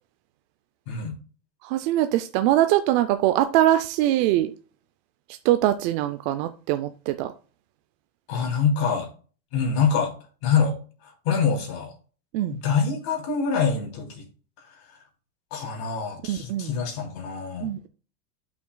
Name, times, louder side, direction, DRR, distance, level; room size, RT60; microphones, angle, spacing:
voice 1, 1.6-4.5 5.4-7.3 12.3-12.6 16.2-16.8 17.6-17.9, right 13 dB, 40° right, 0.5 m, -22 dB
voice 2, 8.3-9.1 9.5-10.1 10.4-10.8 11.0-11.9 12.6-14.2 15.5-17.7, left 6 dB, 50° left, 3.1 m, -25 dB
11.0 x 6.0 x 2.3 m
supercardioid pair, 130°, 48 cm